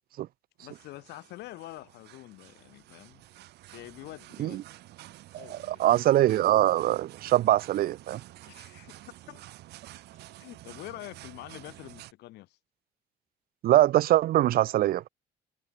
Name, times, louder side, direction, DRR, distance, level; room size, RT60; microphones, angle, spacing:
voice 1, 0.6-3.2 3.7-4.6 5.3-5.8 8.4-9.4 10.4-12.6, left 17 dB, 80° left, 3.6 m, -46 dB
sound 1, 0.6-12.1, right 16 dB, 80° right, 3.4 m, -50 dB
voice 2, 5.3-8.2 13.6-15.0, right 14 dB, 60° right, 0.6 m, -23 dB
cardioid pair, 110°, 17 cm